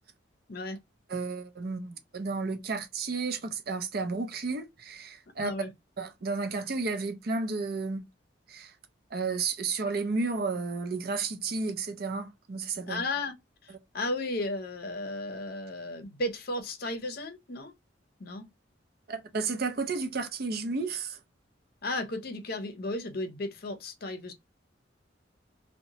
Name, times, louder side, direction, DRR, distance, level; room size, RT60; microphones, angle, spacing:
voice 1, 1.1-5.5 6.0-8.1 8.5-8.7 9.1-13.0 19.1-21.2, right 4 dB, 55° right, 0.5 m, -32 dB
voice 2, 5.4-5.7 12.9-13.3 13.6-17.7 18.2-18.5 21.8-24.3, left 2 dB, 55° left, 0.6 m, -34 dB
2.8 x 2.1 x 2.8 m
head